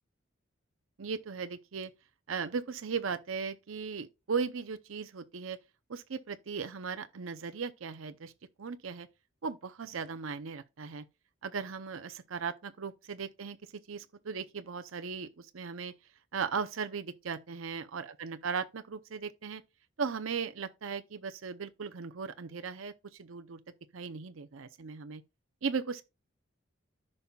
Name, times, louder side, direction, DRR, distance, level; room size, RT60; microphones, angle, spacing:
voice 1, 1.0-1.9 2.3-5.6 5.9-8.3 8.6-9.1 9.4-11.1 11.4-15.9 16.3-19.6 20.0-23.6 23.9-25.2 25.6-26.0, right 5 dB, 90° right, 0.6 m, -37 dB
14.0 x 5.5 x 2.3 m
head